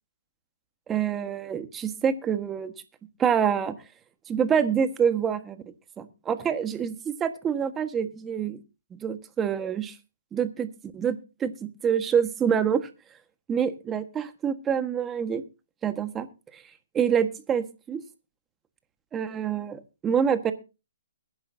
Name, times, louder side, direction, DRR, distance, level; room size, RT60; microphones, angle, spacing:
voice 1, 0.9-2.7 3.2-3.7 4.3-5.6 6.0-8.6 8.9-9.9 10.3-12.9 13.5-15.4 15.8-16.3 16.5-16.6 16.9-18.0 19.1-20.5, right 7 dB, 15° right, 10 dB, 1.4 m, -26 dB
21.5 x 10.5 x 2.7 m, 0.30 s
figure-of-eight pair, 130°, 0 cm